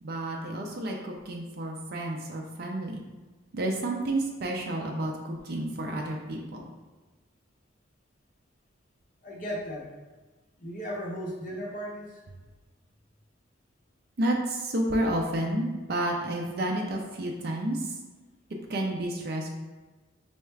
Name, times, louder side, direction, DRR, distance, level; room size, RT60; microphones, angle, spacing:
voice 1, 0.0-3.0 3.5-6.7 14.2-18.0 18.7-19.5, right 1 dB, 50° right, 1 dB, 0.4 m, -30 dB
voice 2, 9.2-9.9 10.6-12.2, equal, 40° left, -3 dB, 0.7 m, -36 dB
4.2 x 2.3 x 3.2 m, 1.2 s
head